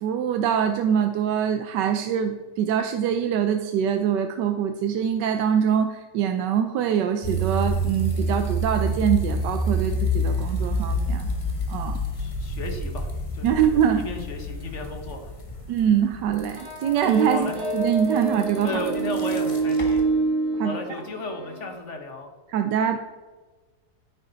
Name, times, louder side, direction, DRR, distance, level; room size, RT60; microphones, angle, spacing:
voice 1, 0.0-11.3 11.7-12.0 13.4-14.0 15.7-18.7 20.6-20.7 22.5-23.0, right 8 dB, 75° right, 7 dB, 1.2 m, -24 dB
sound 1, 7.2-20.0, equal, 20° left, 1.3 m, -28 dB
voice 2, 12.1-13.6 13.9-15.3 17.3-17.6 18.6-20.2 20.6-22.3, left 2 dB, 45° left, 5 dB, 1.4 m, -34 dB
sound 2, 16.6-21.7, right 3 dB, 55° right, 2.8 m, -27 dB
9.8 x 9.5 x 4.0 m, 1.3 s
omnidirectional pair, 2.0 m